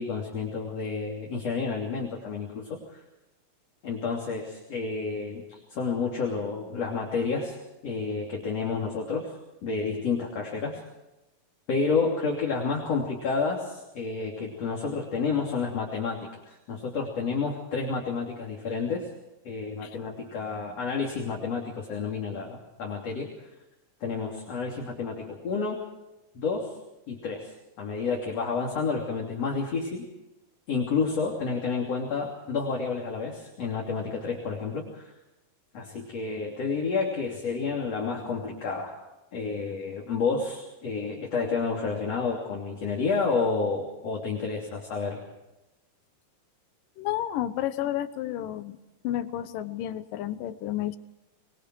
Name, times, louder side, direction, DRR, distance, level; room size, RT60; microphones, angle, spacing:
voice 1, 0.0-3.0 3.8-7.6 7.8-9.4 9.6-10.8 11.7-19.1 19.4-23.3 24.0-25.9 26.4-26.8 27.1-30.0 30.7-35.1 35.7-39.0 39.3-45.2, left 4 dB, 50° left, -1 dB, 4.0 m, -30 dB
voice 2, 47.0-48.8 49.0-51.0, left 12 dB, 90° left, 12 dB, 2.7 m, -31 dB
26.0 x 22.0 x 4.7 m, 0.97 s
omnidirectional pair, 3.8 m